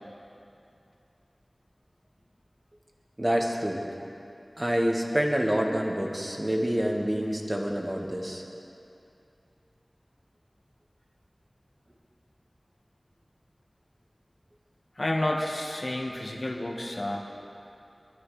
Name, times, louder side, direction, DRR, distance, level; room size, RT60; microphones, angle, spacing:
voice 1, 3.2-3.8 4.6-8.4, equal, 30° right, 0 dB, 1.8 m, -27 dB
voice 2, 15.0-17.2, left 1 dB, 60° left, -1 dB, 1.7 m, -30 dB
24.0 x 12.0 x 3.4 m, 2.6 s
wide cardioid pair, 45°, 0 cm